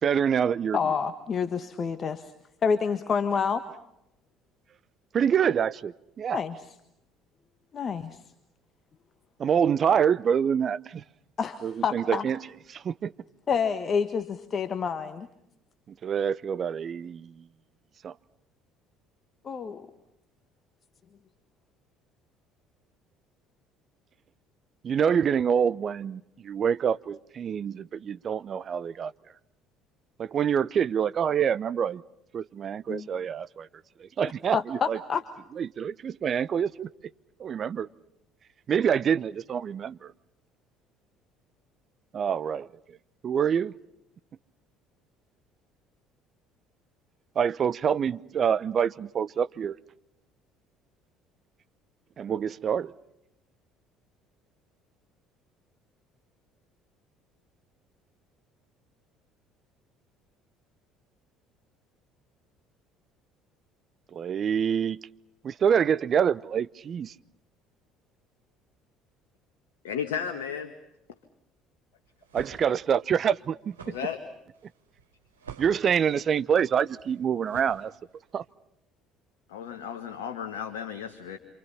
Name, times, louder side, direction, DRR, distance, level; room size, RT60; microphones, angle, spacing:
voice 1, 0.0-0.8 5.1-6.4 9.4-11.0 11.6-12.4 12.7-13.1 16.0-17.4 18.0-18.1 24.8-29.1 30.2-32.0 32.3-33.7 34.0-35.0 35.6-36.9 37.4-37.9 38.7-40.1 42.1-42.7 43.2-43.7 47.4-49.8 52.2-52.9 64.1-65.0 65.4-67.1 72.3-73.6 75.6-77.9 78.3-78.4, right 7 dB, 45° right, 0.9 m, -26 dB
voice 2, 0.7-2.3 2.6-3.6 6.3-6.5 7.7-8.2 11.4-12.3 13.5-15.3 19.4-19.9 32.9-33.1 34.5-35.2, left 6 dB, 40° left, 1.5 m, -28 dB
voice 3, 69.8-70.7 73.8-74.2 79.5-81.4, left 8 dB, 75° left, 1.8 m, -34 dB
sound 1, 72.0-78.3, right 6 dB, 85° right, 3.7 m, -49 dB
28.0 x 27.5 x 5.7 m
hypercardioid pair, 60°, 0 cm